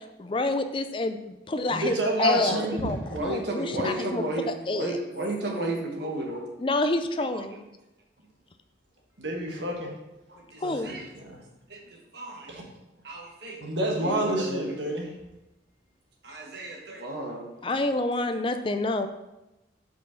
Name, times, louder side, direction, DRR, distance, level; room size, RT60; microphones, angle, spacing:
voice 1, 0.0-4.9 6.6-7.6 10.6-10.9 17.6-19.1, left 2 dB, 30° left, 9 dB, 0.4 m, -28 dB
voice 2, 1.7-2.9 9.2-9.9 10.6-11.4 12.5-12.6 13.6-15.1, right 1 dB, 85° right, 0 dB, 1.5 m, -29 dB
voice 3, 3.1-6.4 10.3-11.1 11.7-11.8 12.1-12.6 13.0-13.6 14.0-14.7 16.2-17.5, right 1 dB, 65° right, 0 dB, 1.3 m, -33 dB
5.2 x 4.4 x 5.7 m, 0.97 s
head